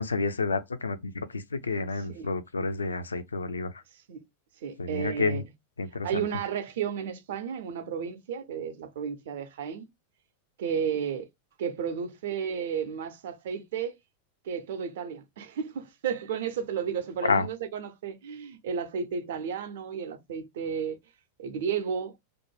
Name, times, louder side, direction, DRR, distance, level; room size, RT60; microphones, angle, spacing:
voice 1, 0.0-3.7 4.8-5.4 5.8-6.2 17.2-17.5, left 4 dB, 75° left, 0.4 m, -29 dB
voice 2, 2.0-2.3 4.1-4.2 4.6-5.4 6.0-9.9 10.6-11.3 11.6-13.9 14.4-21.0 21.4-22.1, right 7 dB, 55° right, 0.6 m, -33 dB
2.5 x 2.1 x 3.2 m
figure-of-eight pair, 90°, 0 cm